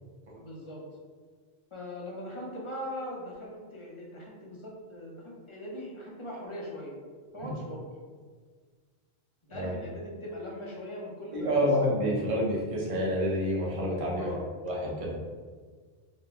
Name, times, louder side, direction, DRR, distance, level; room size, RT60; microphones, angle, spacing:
voice 1, 0.4-0.8 1.7-6.9 7.3-7.9 9.5-11.7 14.2-14.4, left 1 dB, 30° left, -3 dB, 0.7 m, -40 dB
voice 2, 11.3-14.3 14.6-15.3, equal, 35° right, -5 dB, 0.8 m, -28 dB
3.9 x 2.2 x 3.4 m, 1.6 s
omnidirectional pair, 1.1 m